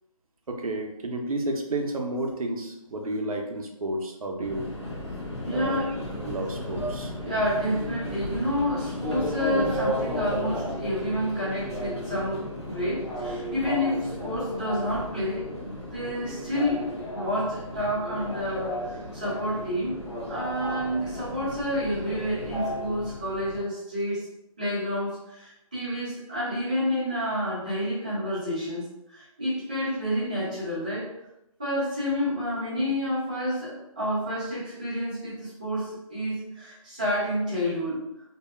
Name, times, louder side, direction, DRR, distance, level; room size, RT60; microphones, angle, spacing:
voice 1, 0.5-4.7 5.5-5.8 6.2-7.1, right 2 dB, 75° right, 3 dB, 0.5 m, -31 dB
Subway metro underground, 4.4-23.6, equal, 45° left, 0.6 m, -34 dB
voice 2, 5.4-6.0 7.2-24.3 24.6-31.1 31.6-38.0, equal, 15° right, -11 dB, 0.5 m, -29 dB
2.6 x 2.2 x 2.3 m, 0.88 s
figure-of-eight pair, 170°, 19 cm